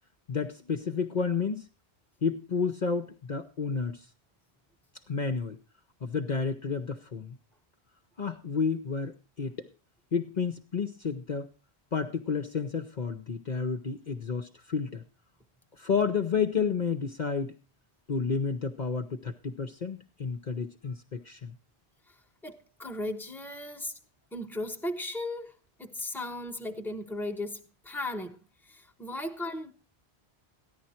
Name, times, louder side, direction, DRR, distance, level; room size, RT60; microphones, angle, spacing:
voice 1, 0.3-1.7 2.2-4.0 5.1-5.6 6.0-7.4 8.2-9.6 10.1-11.5 11.9-15.0 15.8-17.5 18.1-21.5, left 5 dB, 50° left, 0.8 m, -31 dB
voice 2, 22.4-23.9 24.3-25.5 25.8-27.6 27.8-28.4 28.7-29.7, left 1 dB, ahead, 1.1 m, -36 dB
14.0 x 10.5 x 4.3 m
omnidirectional pair, 1.1 m